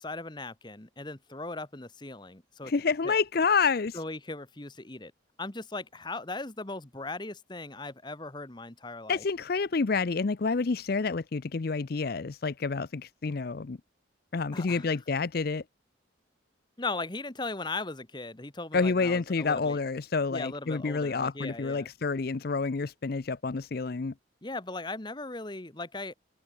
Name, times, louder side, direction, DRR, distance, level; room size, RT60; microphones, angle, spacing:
voice 1, 0.0-2.7 3.0-3.2 3.9-5.1 5.4-9.2 14.5-14.9 16.8-19.8 20.3-21.9 24.4-26.1, left 3 dB, 20° left, 1.3 m, -38 dB
voice 2, 2.6-4.0 9.1-13.8 14.3-15.6 18.7-24.1, left 4 dB, 50° left, 0.5 m, -28 dB
head